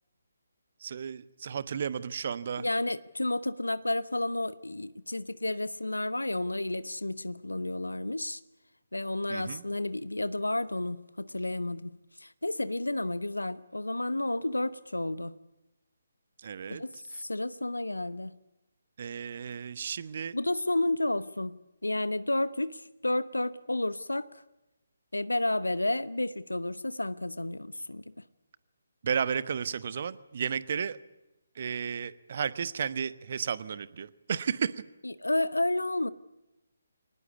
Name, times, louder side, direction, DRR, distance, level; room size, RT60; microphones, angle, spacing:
voice 1, 0.8-2.6 9.3-9.6 16.4-16.8 19.0-20.3 29.0-31.0 31.6-34.7, right 7 dB, 45° right, 1.1 m, -33 dB
voice 2, 2.6-8.4 8.9-15.3 16.7-18.4 20.3-21.6 21.8-24.3 25.1-28.0 35.0-36.1, left 2 dB, 80° left, 0.9 m, -31 dB
24.5 x 19.5 x 8.4 m
figure-of-eight pair, 140°, 0 cm